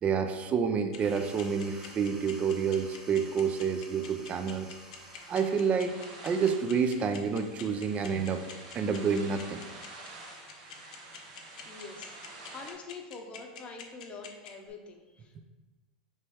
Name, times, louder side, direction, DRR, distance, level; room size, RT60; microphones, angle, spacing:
voice 1, 0.0-4.7 5.3-6.0 6.2-8.4 8.7-9.6, right 6 dB, 30° right, 8 dB, 0.4 m, -28 dB
sound 1, 0.9-14.7, left 9 dB, 80° left, 0.6 m, -45 dB
sound 2, 0.9-5.7, right 1 dB, 15° right, 1.2 m, -51 dB
sound 3, 4.6-12.7, right 2 dB, 75° right, 0.9 m, -48 dB
voice 2, 11.6-15.4, left 4 dB, 30° left, 3 dB, 0.7 m, -45 dB
3.3 x 3.0 x 4.6 m, 1.2 s
hypercardioid pair, 105°, 4 cm